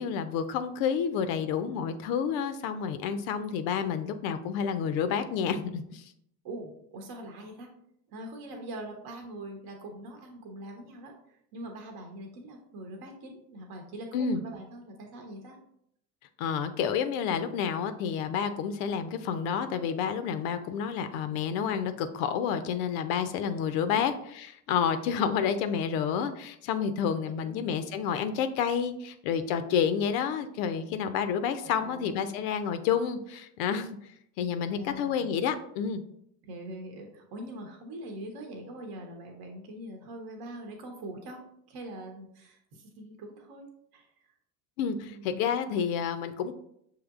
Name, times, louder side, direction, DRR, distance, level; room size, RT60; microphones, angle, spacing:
voice 1, 0.0-6.0 14.1-14.4 16.4-33.9 34.4-36.0 44.8-46.5, left 7 dB, 60° left, 10 dB, 0.5 m, -29 dB
voice 2, 6.4-7.7 8.1-15.6 23.9-24.1 25.2-25.4 27.2-27.6 31.6-32.1 34.6-35.3 36.4-41.4 41.7-44.3 45.0-45.4, right 1 dB, 50° right, 3 dB, 0.9 m, -43 dB
6.3 x 2.9 x 2.4 m, 0.74 s
hypercardioid pair, 70°, 48 cm